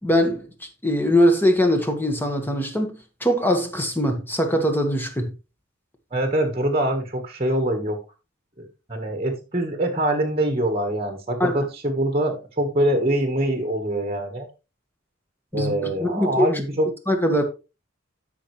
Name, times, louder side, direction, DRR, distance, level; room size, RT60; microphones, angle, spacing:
voice 1, 0.0-0.5 0.8-5.3 11.4-11.7 15.5-16.6 17.1-17.4, equal, 10° left, 1.6 m, -22 dB
voice 2, 6.1-8.0 8.6-14.5 15.5-16.9, right 1 dB, 30° right, 1.4 m, -24 dB
12.5 x 5.8 x 3.2 m
head